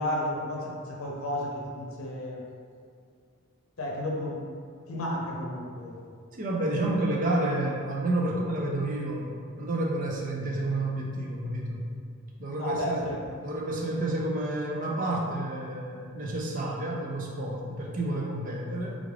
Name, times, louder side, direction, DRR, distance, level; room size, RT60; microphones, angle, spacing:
voice 1, 0.0-2.4 3.8-4.4 4.9-6.0 12.6-13.2, left 1 dB, 80° left, -2 dB, 0.6 m, -32 dB
voice 2, 6.3-11.9 12.4-13.1 13.4-18.9, right 1 dB, 40° right, -2 dB, 0.5 m, -30 dB
3.6 x 2.4 x 3.2 m, 2.2 s
head